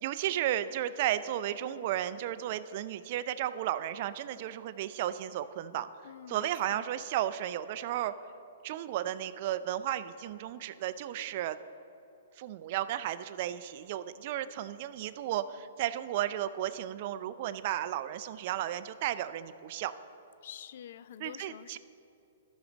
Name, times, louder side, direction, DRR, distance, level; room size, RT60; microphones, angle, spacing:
voice 1, 0.0-5.9 6.3-8.1 8.6-11.6 12.4-19.9 21.2-21.8, right 12 dB, 45° right, 14 dB, 0.4 m, -34 dB
voice 2, 6.0-6.9 20.4-21.8, left 9 dB, 60° left, 16 dB, 0.3 m, -47 dB
13.5 x 6.3 x 3.9 m, 2.8 s
hypercardioid pair, 140°, 0 cm